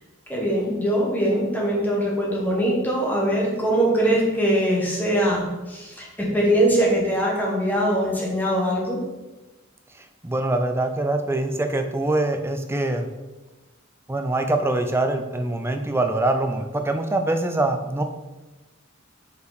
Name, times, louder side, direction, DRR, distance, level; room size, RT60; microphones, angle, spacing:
voice 1, 0.3-9.0, right 1 dB, 10° left, -3 dB, 1.4 m, -22 dB
voice 2, 10.2-13.1 14.1-18.0, right 2 dB, 10° right, 6 dB, 0.4 m, -24 dB
5.4 x 5.0 x 4.1 m, 1.1 s
head